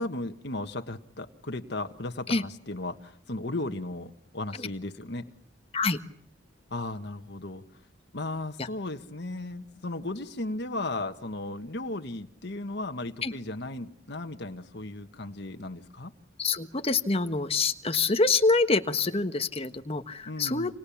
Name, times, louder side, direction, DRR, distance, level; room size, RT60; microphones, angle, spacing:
voice 1, 0.0-5.3 6.7-7.6 8.1-16.1 20.2-20.7, left 2 dB, 60° left, 6 dB, 1.5 m, -35 dB
voice 2, 16.4-20.7, left 3 dB, 30° left, 9 dB, 1.3 m, -26 dB
29.0 x 27.5 x 7.2 m, 0.68 s
head